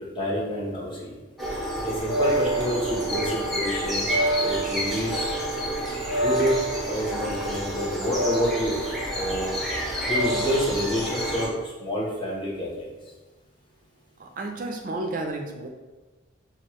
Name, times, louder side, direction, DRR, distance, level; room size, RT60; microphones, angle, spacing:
voice 1, 0.1-1.1 1.8-5.3 6.2-6.5 6.9-8.8 9.1-9.5 10.1-11.5 11.8-12.9, equal, 25° left, -5 dB, 0.9 m, -28 dB
sound 1, 1.4-11.5, right 1 dB, ahead, 0.6 m, -27 dB
voice 2, 14.2-15.7, right 2 dB, 45° right, 2 dB, 0.4 m, -32 dB
6.1 x 2.3 x 3.0 m, 1.2 s
head